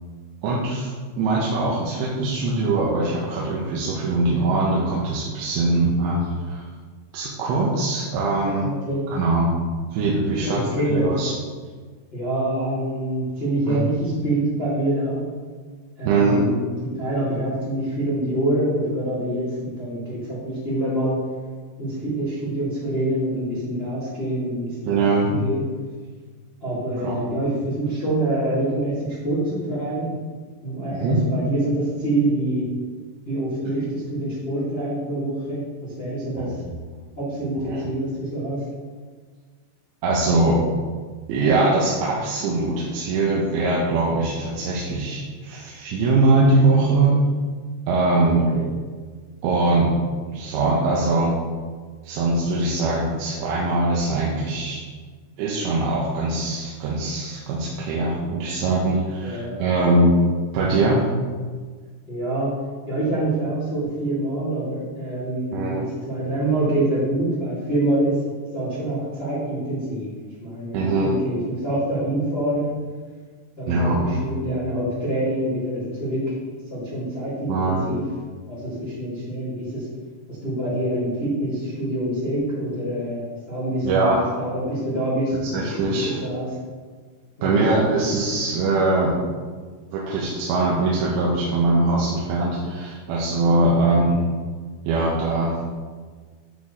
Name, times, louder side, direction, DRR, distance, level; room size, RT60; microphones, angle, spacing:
voice 1, 0.4-6.6 7.1-8.7 9.1-9.5 9.9-10.6 10.9-11.3 13.7-13.8 16.1-16.5 24.9-25.4 27.0-27.2 31.0-31.2 36.4-36.7 37.7-37.8 40.0-40.6 41.3-47.2 47.9-48.5 49.4-49.9 50.3-51.4 52.0-54.8 55.4-60.1 60.5-61.0 65.5-65.8 70.7-71.1 73.7-74.2 77.5-77.9 83.8-84.3 85.4-86.2 87.4-89.1 89.9-94.2 94.9-95.6, right 2 dB, 85° right, -4 dB, 3.2 m, -22 dB
voice 2, 8.6-9.1 10.4-11.2 12.1-15.2 16.0-21.2 21.8-25.6 26.6-30.2 30.6-32.7 33.2-36.5 37.2-38.6 48.3-48.7 59.2-59.5 62.1-62.5 62.9-68.2 68.5-70.1 70.4-72.8 73.6-76.4 76.7-78.0 78.5-79.9 80.3-86.5 87.4-87.8, right 1 dB, 30° left, -11 dB, 1.2 m, -26 dB
12.0 x 4.4 x 3.1 m, 1.5 s
omnidirectional pair, 5.0 m